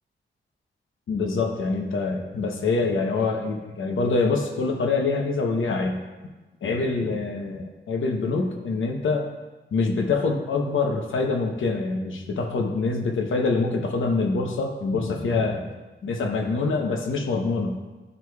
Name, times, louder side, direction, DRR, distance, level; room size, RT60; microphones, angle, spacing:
voice 1, 1.1-6.0 6.6-9.3 9.7-15.7 16.0-17.8, left 3 dB, 80° left, 3 dB, 0.8 m, -25 dB
11.0 x 4.7 x 2.3 m, 1.2 s
wide cardioid pair, 170°, 20 cm